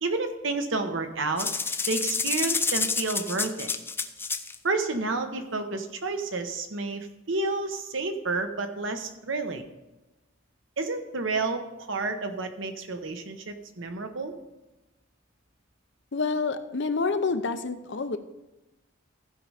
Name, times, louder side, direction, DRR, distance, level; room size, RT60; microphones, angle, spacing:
voice 1, 0.0-1.5 1.9-3.7 4.6-9.6 10.8-14.3, right 3 dB, 70° right, 7 dB, 1.1 m, -30 dB
sound 1, 1.4-4.6, left 4 dB, 10° left, 0.4 m, -29 dB
voice 2, 16.1-18.2, left 4 dB, 60° left, 10 dB, 0.7 m, -28 dB
14.5 x 5.4 x 4.9 m, 1.0 s
head